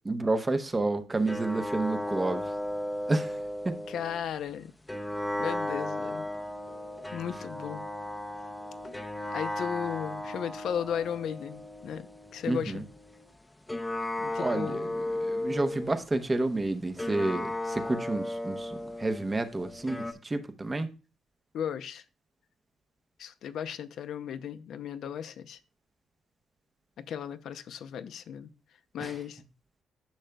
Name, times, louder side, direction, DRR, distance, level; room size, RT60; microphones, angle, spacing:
voice 1, 0.0-2.4 3.1-3.4 3.6-3.8 12.5-12.8 14.4-20.9 29.0-29.1, right 2 dB, 25° right, 0.8 m, -30 dB
sound 1, 1.3-4.3 4.9-13.3 13.7-16.2 17.0-20.1, left 1 dB, 10° left, 0.7 m, -35 dB
voice 2, 3.9-4.7 5.4-6.3 7.1-7.9 9.3-12.9 14.2-14.9 21.5-22.0 23.2-25.6 27.0-28.5 28.9-29.4, left 8 dB, 70° left, 0.6 m, -35 dB
10.5 x 6.3 x 2.3 m
cardioid pair, 90°, 0 cm